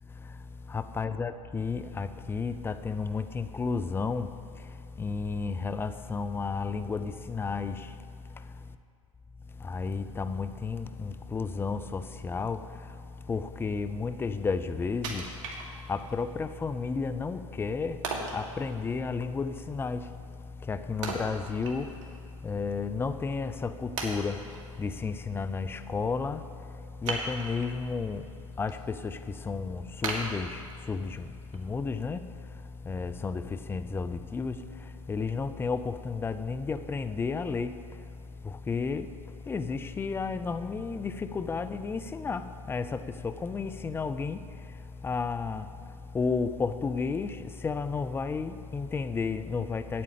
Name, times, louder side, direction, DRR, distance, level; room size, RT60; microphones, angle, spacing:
voice 1, 0.7-4.3 5.0-7.9 9.6-12.7 13.3-15.4 15.7-18.0 18.3-20.1 20.6-22.0 22.4-24.4 24.8-26.4 27.0-28.3 28.6-32.2 32.8-37.8 38.4-39.1 39.5-44.4 45.0-45.7 46.1-50.0, left 4 dB, 15° left, 0.5 m, -32 dB
Wood, 15.0-16.1 16.6-16.7 18.0-18.4 21.0-22.1 22.5-22.6 23.3-23.4 24.0-24.6 27.0-27.8 28.3-28.7 29.1-29.2 30.0-31.0 31.5-31.6, right 3 dB, 65° right, 1.9 m, -36 dB
8.7 x 8.5 x 8.5 m
hypercardioid pair, 100°, 17 cm